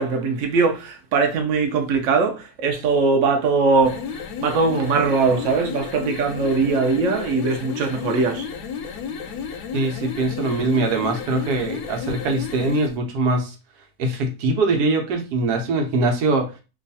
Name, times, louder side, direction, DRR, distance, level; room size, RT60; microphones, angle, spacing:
voice 1, 0.0-8.5, right 4 dB, 60° right, 1.0 m, -21 dB
sound 1, 3.7-13.0, left 6 dB, 80° left, 1.1 m, -32 dB
voice 2, 9.7-13.5 14.0-16.5, right 2 dB, 85° right, 1.3 m, -22 dB
3.1 x 2.3 x 4.0 m
omnidirectional pair, 1.7 m